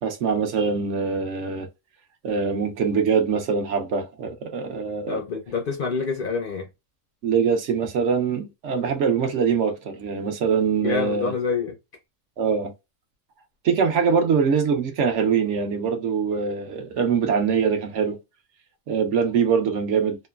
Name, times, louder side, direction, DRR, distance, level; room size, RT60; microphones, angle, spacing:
voice 1, 0.0-1.7 2.2-5.2 7.2-11.3 12.4-12.7 13.6-18.2 18.9-20.2, right 6 dB, 65° right, 0.9 m, -23 dB
voice 2, 5.1-6.7 10.8-11.7, left 5 dB, 60° left, 0.6 m, -27 dB
3.0 x 2.2 x 2.2 m
omnidirectional pair, 1.4 m